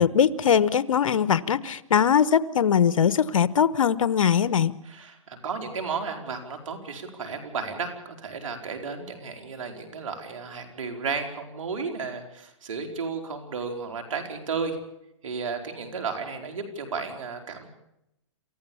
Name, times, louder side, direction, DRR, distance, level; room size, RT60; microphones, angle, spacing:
voice 1, 0.0-4.7, left 8 dB, 85° left, 16 dB, 1.1 m, -21 dB
voice 2, 4.8-14.8 15.2-17.7, right 5 dB, 75° right, 4 dB, 4.5 m, -33 dB
28.0 x 14.5 x 7.2 m, 0.85 s
hypercardioid pair, 145°, 17 cm